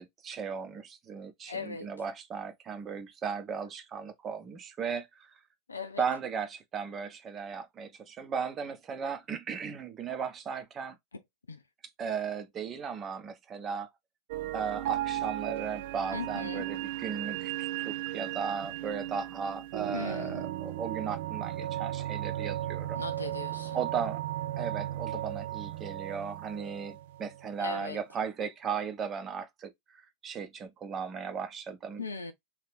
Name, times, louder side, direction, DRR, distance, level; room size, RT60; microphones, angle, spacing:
voice 1, 0.0-5.3 6.0-11.0 12.0-13.9 14.5-23.0 23.7-24.2 24.6-32.0, right 6 dB, 25° right, 0.8 m, -36 dB
voice 2, 1.5-1.9 5.7-6.0 11.5-11.6 16.1-16.7 19.9-20.5 23.0-23.8 27.6-28.0 32.0-32.3, left 4 dB, 75° left, 0.6 m, -38 dB
sound 1, 14.3-27.7, right 13 dB, 55° right, 0.3 m, -36 dB
3.0 x 2.8 x 3.5 m
figure-of-eight pair, 90°, 0 cm